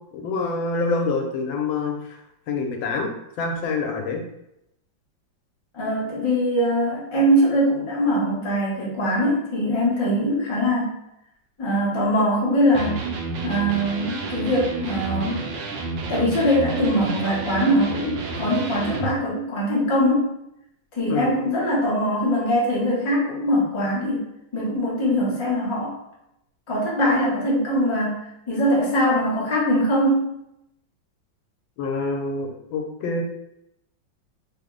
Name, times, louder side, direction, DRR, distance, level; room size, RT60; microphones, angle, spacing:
voice 1, 0.1-2.2 2.5-3.1 3.4-4.2 21.1-21.3 31.8-33.2, left 3 dB, 90° left, 2 dB, 1.4 m, -26 dB
voice 2, 5.7-10.9 11.6-13.0 13.4-15.4 16.1-20.3 20.9-24.3 24.5-25.9 26.7-30.3, equal, 50° left, -5 dB, 0.3 m, -22 dB
Electric guitar, 12.7-19.1, right 4 dB, 75° right, 1.2 m, -30 dB
3.4 x 2.0 x 3.6 m, 0.82 s
omnidirectional pair, 2.1 m